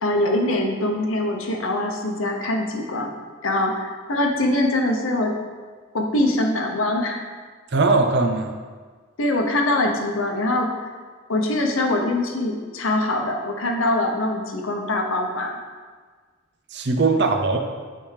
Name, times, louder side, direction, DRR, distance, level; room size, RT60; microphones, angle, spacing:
voice 1, 0.0-3.1 3.4-5.3 5.9-7.2 9.2-10.7 11.3-15.6, left 1 dB, 85° left, 2 dB, 0.8 m, -23 dB
voice 2, 7.7-8.6 16.7-17.6, right 3 dB, 55° right, 5 dB, 0.5 m, -20 dB
8.8 x 3.5 x 3.3 m, 1.5 s
head